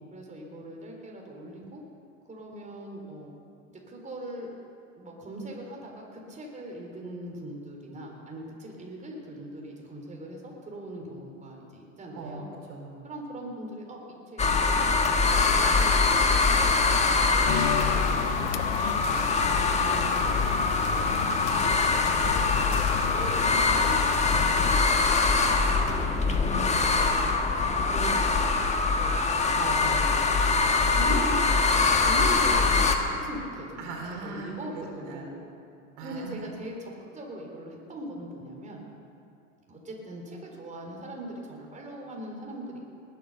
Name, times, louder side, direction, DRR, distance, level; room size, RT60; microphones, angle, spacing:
voice 1, 0.1-1.8 2.3-3.3 3.7-4.5 5.0-12.5 13.0-14.0 14.3-18.5 19.1-19.3 19.8-26.2 26.7-27.3 27.7-29.3 29.8-30.0 30.7-31.4 31.7-35.4 36.0-38.8 39.7-42.8, right 1 dB, 20° right, 0 dB, 3.8 m, -40 dB
voice 2, 12.7-13.0 18.4-19.3 29.5-30.3 33.8-35.3 36.0-36.5, right 3 dB, 55° right, 1 dB, 4.3 m, -39 dB
sound 1, 14.4-33.0, left 4 dB, 15° left, 1.5 m, -23 dB
sound 2, 17.5-24.9, left 13 dB, 50° left, 0.6 m, -33 dB
20.0 x 9.3 x 6.8 m, 2.7 s
hypercardioid pair, 95°, 39 cm